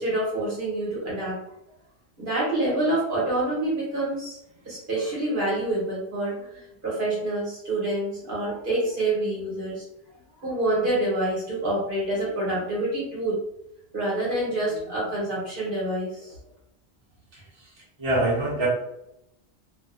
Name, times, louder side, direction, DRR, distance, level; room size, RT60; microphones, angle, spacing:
voice 1, 0.0-1.4 2.2-4.4 4.6-9.8 10.4-13.4 13.9-16.3, right 1 dB, 50° right, -6 dB, 1.1 m, -27 dB
voice 2, 18.0-18.7, right 2 dB, 25° right, -6 dB, 0.8 m, -23 dB
2.5 x 2.3 x 2.4 m, 0.81 s
omnidirectional pair, 1.2 m